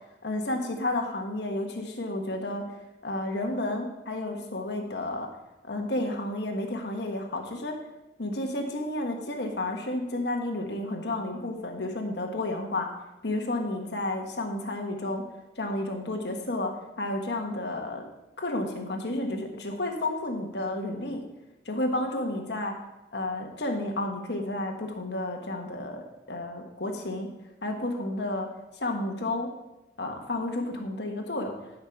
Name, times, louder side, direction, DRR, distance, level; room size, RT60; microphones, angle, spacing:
voice 1, 0.2-2.6 3.0-5.3 5.6-7.7 8.2-12.9 13.2-15.2 15.6-16.7 17.0-18.0 18.4-21.2 21.6-22.7 23.1-27.3 27.6-28.5 28.8-29.5 30.0-31.5, left 1 dB, 65° left, 2 dB, 1.4 m, -31 dB
12.0 x 5.7 x 5.8 m, 1.0 s
head